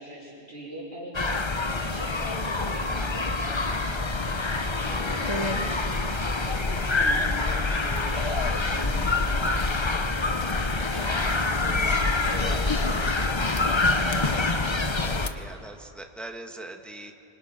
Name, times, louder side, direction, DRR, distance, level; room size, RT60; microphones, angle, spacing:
voice 1, 0.0-3.8 4.5-13.6 14.4-14.7, right 1 dB, 90° right, -7 dB, 5.6 m, -42 dB
sound 1, 1.1-15.3, left 3 dB, 30° left, 0.9 m, -26 dB
voice 2, 4.7-5.7 12.4-13.1 14.8-17.1, right 2 dB, ahead, 4 dB, 1.3 m, -43 dB
25.0 x 24.5 x 5.8 m, 2.7 s
omnidirectional pair, 1.1 m